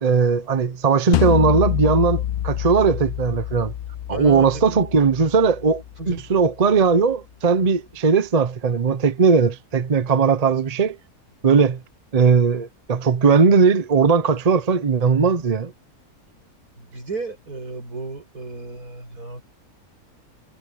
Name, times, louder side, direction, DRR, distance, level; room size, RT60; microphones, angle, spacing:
voice 1, 0.0-3.7 4.1-11.0 11.4-11.8 12.1-15.7, right 5 dB, 35° right, 0.7 m, -18 dB
sound 1, 1.1-6.2, left 12 dB, 85° left, 0.4 m, -26 dB
voice 2, 4.1-4.8 6.0-6.3 16.8-19.4, right 3 dB, 80° right, 6.7 m, -34 dB
omnidirectional pair, 1.6 m